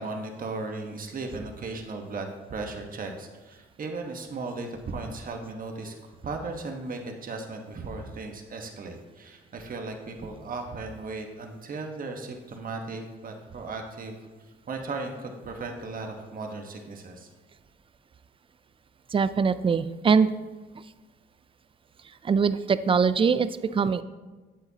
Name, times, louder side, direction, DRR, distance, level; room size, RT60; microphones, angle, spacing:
voice 1, 0.0-5.9 6.2-14.1 14.7-17.3, right 3 dB, 45° right, 3 dB, 1.2 m, -36 dB
voice 2, 19.1-20.3 20.8-20.9 22.0-24.0, right 5 dB, 25° right, 14 dB, 0.4 m, -23 dB
9.9 x 8.1 x 2.8 m, 1.3 s
cardioid pair, 90°, 20 cm